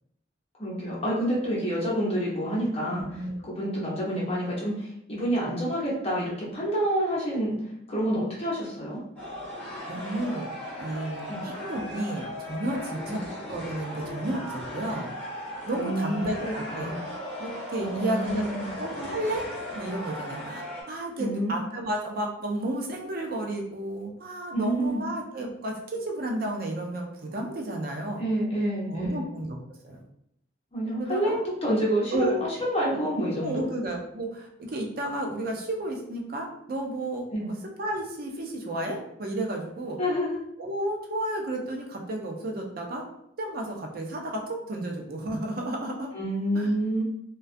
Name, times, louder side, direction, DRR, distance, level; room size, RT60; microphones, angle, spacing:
voice 1, 0.6-3.1 3.4-7.6 7.9-9.0 11.3-11.4 13.1-13.2 15.8-17.0 17.8-18.7 21.2-21.5 24.5-25.0 28.2-29.3 30.7-33.6 37.3-37.5 40.0-40.3 46.1-47.0, equal, 30° left, -6 dB, 0.8 m, -28 dB
voice 2, 2.9-3.4 9.9-10.5 10.8-13.2 13.5-15.1 15.7-17.0 17.4-19.4 19.7-28.2 28.9-30.0 31.0-31.4 32.1-32.5 33.4-40.0 40.6-43.0 43.4-46.1 46.5-46.7, right 1 dB, 50° right, 2 dB, 0.5 m, -32 dB
sound 1, 9.2-20.8, left 1 dB, 10° left, 1.0 m, -37 dB
2.3 x 2.3 x 2.5 m, 0.75 s
head